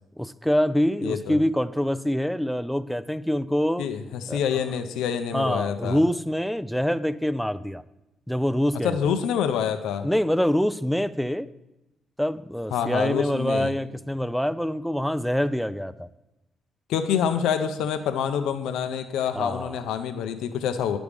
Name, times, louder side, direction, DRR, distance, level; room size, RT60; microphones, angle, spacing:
voice 1, 0.2-3.9 4.3-4.4 5.3-7.8 8.3-9.0 10.0-11.5 12.2-16.1 19.3-19.8, equal, ahead, 13 dB, 0.3 m, -25 dB
voice 2, 1.0-1.4 3.8-6.0 8.8-10.1 12.7-13.7 16.9-21.0, left 8 dB, 90° left, 8 dB, 0.5 m, -26 dB
9.5 x 6.0 x 3.4 m, 0.93 s
cardioid pair, 90°, 0 cm